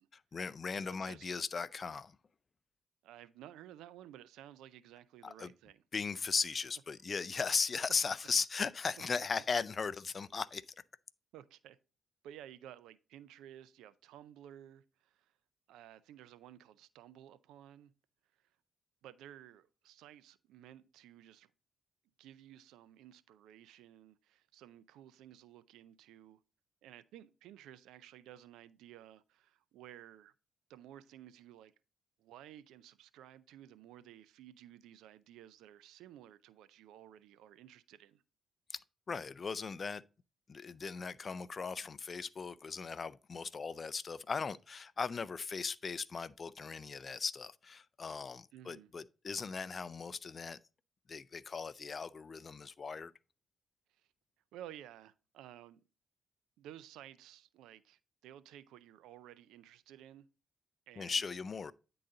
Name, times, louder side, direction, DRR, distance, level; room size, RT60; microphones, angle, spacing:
voice 1, 0.1-2.2 5.2-5.5 5.9-10.6 38.7-38.8 39.1-40.0 40.5-50.6 51.1-53.1 61.0-61.7, left 5 dB, 45° left, 0.4 m, -38 dB
voice 2, 0.9-1.3 3.0-5.8 6.1-6.3 7.4-7.6 11.3-11.8 12.2-15.3 15.7-17.9 19.0-21.5 22.2-26.4 26.8-30.3 30.7-31.7 32.2-38.2 48.5-48.9 54.0-54.1 54.5-55.8 56.6-60.3 60.9-61.3, right 11 dB, 85° right, 0.4 m, -54 dB
9.8 x 3.9 x 3.8 m
supercardioid pair, 55°, 0 cm